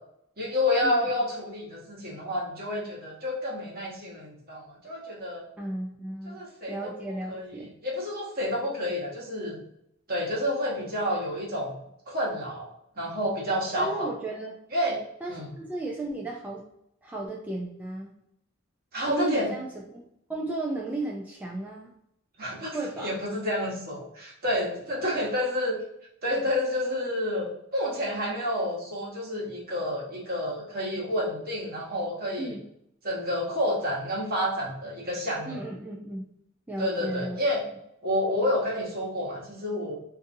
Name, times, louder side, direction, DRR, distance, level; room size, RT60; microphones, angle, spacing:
voice 1, 0.4-5.4 6.2-6.9 7.3-7.5 7.8-9.6 10.1-11.7 12.1-12.7 13.0-14.1 14.7-15.0 15.3-15.5 18.9-19.5 22.4-25.8 26.2-32.5 33.0-35.6 36.8-37.6 38.0-40.0, left 1 dB, 50° right, -3 dB, 1.1 m, -29 dB
voice 2, 5.6-6.4 6.7-7.7 13.8-14.6 15.2-16.6 17.0-18.1 19.0-20.0 20.3-21.9 22.7-23.2 25.0-25.1 32.4-32.6 35.5-36.3 36.7-37.4, right 2 dB, 10° right, -2 dB, 0.3 m, -34 dB
3.8 x 2.6 x 2.6 m, 0.77 s
head